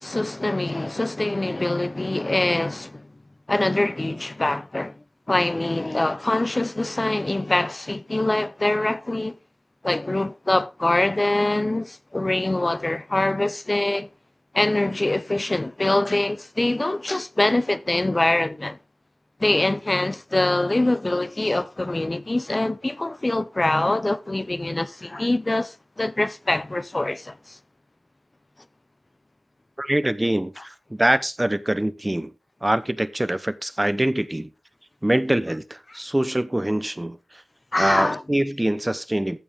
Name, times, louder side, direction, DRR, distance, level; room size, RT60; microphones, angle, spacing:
voice 1, 0.0-3.1 3.5-5.0 5.3-9.4 9.8-14.1 14.5-18.8 19.4-27.6 37.7-38.2, left 2 dB, 35° left, 0.6 m, -24 dB
voice 2, 29.8-32.3 32.6-34.5 35.0-37.4 37.8-39.4, right 1 dB, 15° right, 0.9 m, -24 dB
15.0 x 6.7 x 3.5 m
wide cardioid pair, 60°, 0 cm